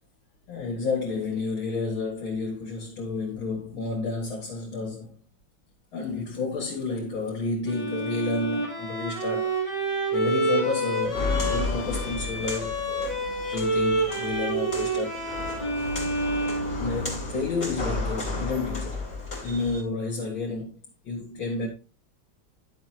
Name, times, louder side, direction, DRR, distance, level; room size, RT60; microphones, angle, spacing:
voice 1, 0.5-5.1 5.9-9.5 10.1-13.1 13.5-15.2 16.8-19.0 19.4-21.7, left 3 dB, 70° left, 2.7 m, -31 dB
Bowed string instrument, 7.7-17.4, right 2 dB, 15° right, 5.8 m, -28 dB
Walk footsteps, 11.0-19.8, left 3 dB, 30° left, 3.4 m, -33 dB
11.0 x 7.4 x 2.9 m
omnidirectional pair, 2.2 m